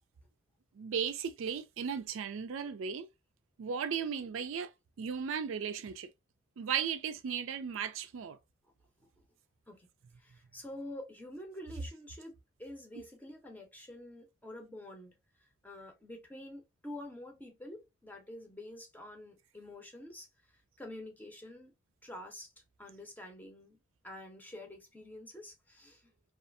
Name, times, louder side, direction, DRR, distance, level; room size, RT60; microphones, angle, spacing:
voice 1, 0.8-3.1 3.6-4.7 5.0-6.1 6.6-8.4, right 7 dB, 70° right, 0.4 m, -36 dB
voice 2, 10.2-12.3 12.6-15.2 15.6-20.3 20.8-21.7 22.0-22.5 22.8-23.8 24.0-26.0, left 1 dB, 10° left, 0.7 m, -47 dB
2.6 x 2.4 x 2.5 m
head